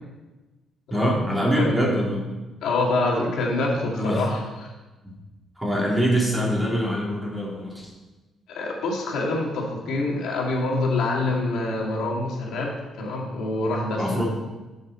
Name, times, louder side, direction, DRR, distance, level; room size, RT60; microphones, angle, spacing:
voice 1, 0.9-2.2 3.9-4.3 5.6-7.9 13.9-14.2, equal, 10° right, -3 dB, 3.2 m, -24 dB
voice 2, 2.6-4.7 8.5-14.2, left 2 dB, 80° left, -1 dB, 2.2 m, -26 dB
12.0 x 6.5 x 4.3 m, 1.1 s
cardioid pair, 90°, 0 cm